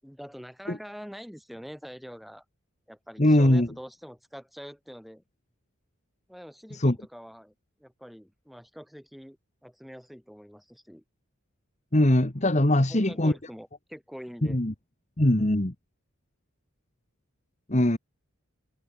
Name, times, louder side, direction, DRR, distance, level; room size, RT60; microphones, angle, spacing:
voice 1, 0.0-2.4 2.9-5.2 6.3-7.5 7.8-9.4 9.6-11.0 12.6-14.6, equal, ahead, 5.6 m, -44 dB
voice 2, 3.2-3.7 6.7-7.0 11.9-13.3 14.5-14.7 15.2-15.7 17.7-18.0, left 1 dB, 35° left, 1.5 m, -21 dB
head